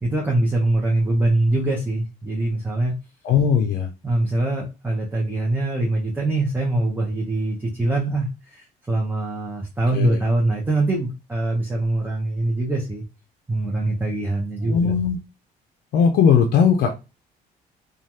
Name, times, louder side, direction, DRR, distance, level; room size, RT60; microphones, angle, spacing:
voice 1, 0.0-2.9 4.0-13.0 13.5-14.9, right 2 dB, 10° right, -2 dB, 0.7 m, -23 dB
voice 2, 3.2-3.9 9.9-10.2 14.6-15.2 15.9-16.9, left 7 dB, 70° left, 4 dB, 0.5 m, -18 dB
3.1 x 2.3 x 2.7 m, 0.27 s
cardioid pair, 110°, 17 cm